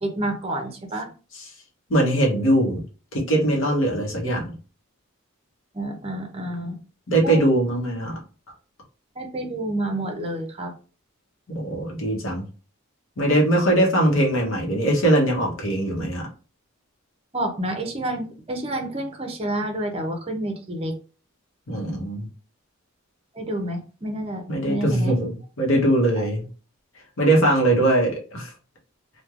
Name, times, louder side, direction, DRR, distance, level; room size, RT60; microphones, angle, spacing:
voice 1, 0.0-1.1 5.7-6.8 7.2-7.4 9.2-10.7 17.3-21.0 23.3-25.1 26.2-26.3, right 1 dB, 25° right, 3 dB, 0.6 m, -29 dB
voice 2, 1.9-2.8 3.1-4.6 7.1-8.2 11.5-12.4 13.2-16.3 21.7-22.3 24.5-26.5 27.2-28.5, right 1 dB, 65° left, -1 dB, 0.9 m, -21 dB
3.1 x 2.2 x 2.4 m, 0.36 s
head